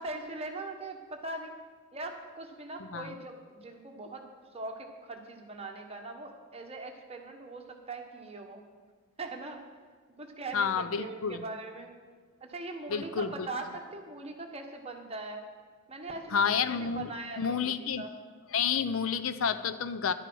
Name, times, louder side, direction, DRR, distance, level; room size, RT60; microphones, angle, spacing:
voice 1, 0.0-1.5 1.9-4.3 4.5-8.6 9.2-9.6 10.2-11.9 12.4-15.4 15.9-16.4 16.7-18.1, right 2 dB, 30° right, 3 dB, 1.3 m, -41 dB
voice 2, 10.5-11.4 12.9-13.5 16.3-17.1 17.4-18.0 18.5-20.1, left 6 dB, 70° left, 12 dB, 0.5 m, -30 dB
11.5 x 9.9 x 6.2 m, 1.5 s
head